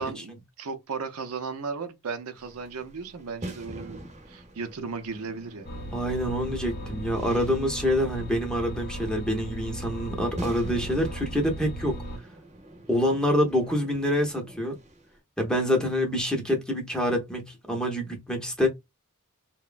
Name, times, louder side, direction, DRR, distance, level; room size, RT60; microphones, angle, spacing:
voice 1, 0.0-5.7, right 5 dB, 75° right, 0.5 m, -35 dB
sound 1, 2.3-15.2, right 1 dB, 30° right, 0.7 m, -45 dB
sound 2, 5.6-12.2, right 1 dB, 45° left, 0.7 m, -37 dB
voice 2, 5.9-12.0 12.9-14.8 15.4-18.7, equal, 5° left, 0.7 m, -26 dB
3.0 x 2.1 x 2.4 m
head